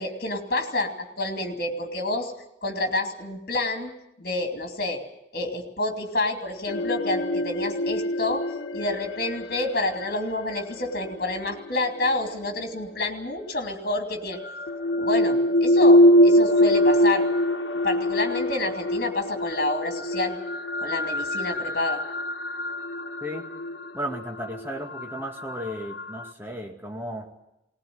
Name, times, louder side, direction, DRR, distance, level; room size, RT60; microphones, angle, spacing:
voice 1, 0.0-2.3 2.6-3.9 4.2-5.0 5.3-8.4 8.7-14.4 15.0-17.3 17.8-20.4 20.8-22.0, left 2 dB, 50° left, 5 dB, 2.8 m, -28 dB
sound 1, 6.7-12.7 13.8-26.3, left 1 dB, 85° left, 1.2 m, -24 dB
voice 2, 23.9-27.3, equal, 10° right, 2 dB, 2.0 m, -34 dB
19.0 x 19.0 x 9.5 m, 0.86 s
head